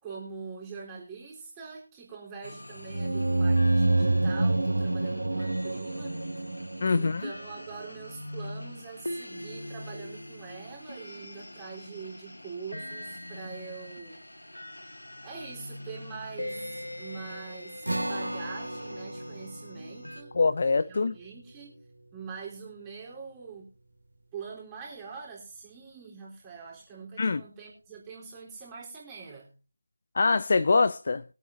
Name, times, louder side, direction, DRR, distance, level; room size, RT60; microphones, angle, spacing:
voice 1, 0.0-6.2 6.9-14.2 15.2-20.4 20.9-21.8 22.1-23.7 24.3-29.5, right 5 dB, 15° right, 3.6 m, -43 dB
sound 1, 2.4-20.2, left 1 dB, 80° left, 1.2 m, -43 dB
sound 2, 2.9-7.4, right 2 dB, 65° right, 0.5 m, -26 dB
voice 2, 6.8-7.2 20.3-21.2 27.2-27.4 30.1-31.2, left 4 dB, 45° left, 0.5 m, -24 dB
sound 3, 17.8-24.5, right 1 dB, 80° right, 2.3 m, -39 dB
22.5 x 8.3 x 2.7 m
figure-of-eight pair, 160°, 0 cm